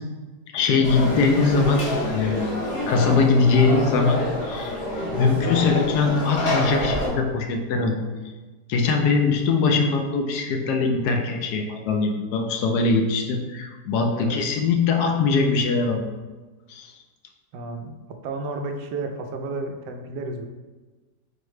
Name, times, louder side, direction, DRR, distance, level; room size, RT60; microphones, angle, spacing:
voice 1, 0.5-2.5 2.9-4.7 5.1-8.0 8.7-16.0 16.7-16.9, left 4 dB, 75° left, 3 dB, 1.1 m, -21 dB
Conversation / Crowd, 0.8-7.1, left 1 dB, 50° left, 1.2 m, -27 dB
voice 2, 14.1-14.5 17.5-17.9 18.2-20.5, right 2 dB, 85° right, 5 dB, 1.2 m, -32 dB
4.6 x 2.1 x 4.7 m, 1.3 s
omnidirectional pair, 1.8 m